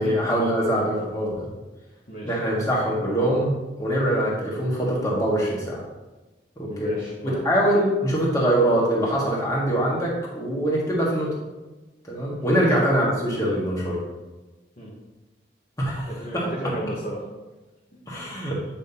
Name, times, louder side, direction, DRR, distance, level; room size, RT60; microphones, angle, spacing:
voice 1, 0.0-1.5 2.2-5.8 6.6-6.9 7.2-11.3 12.1-14.0 15.8-16.5 18.1-18.6, right 1 dB, 20° left, -5 dB, 1.6 m, -23 dB
voice 2, 2.1-2.4 6.6-7.4 12.4-12.6 14.8-14.9 16.1-17.2, equal, 50° left, -7 dB, 1.4 m, -34 dB
8.8 x 5.4 x 2.9 m, 1.2 s
head